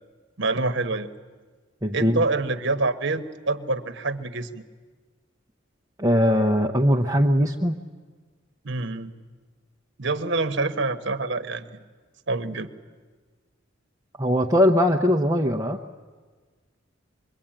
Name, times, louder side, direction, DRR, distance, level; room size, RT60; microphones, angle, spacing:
voice 1, 0.4-1.1 1.9-4.6 8.6-9.1 10.0-11.7 12.3-12.7, right 3 dB, 60° right, 9 dB, 1.2 m, -26 dB
voice 2, 1.8-2.2 6.0-7.8 14.2-15.8, equal, 15° right, -1 dB, 0.8 m, -20 dB
25.5 x 22.5 x 8.9 m, 1.4 s
head